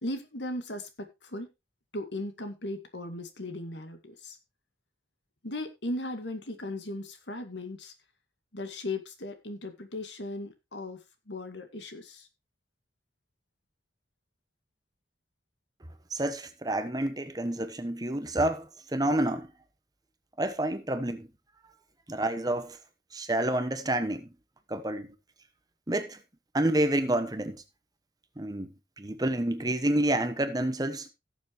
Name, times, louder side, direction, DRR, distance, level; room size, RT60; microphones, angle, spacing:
voice 1, 0.0-1.5 1.9-4.4 5.4-7.9 8.5-11.0 11.3-12.3, left 1 dB, 80° left, 2.0 m, -37 dB
voice 2, 16.1-19.5 20.4-21.3 22.1-22.8 23.1-24.3 24.7-25.1 25.9-26.2 26.5-27.6 28.4-28.7 29.0-31.1, right 1 dB, 20° right, 1.1 m, -29 dB
17.0 x 7.2 x 3.1 m
head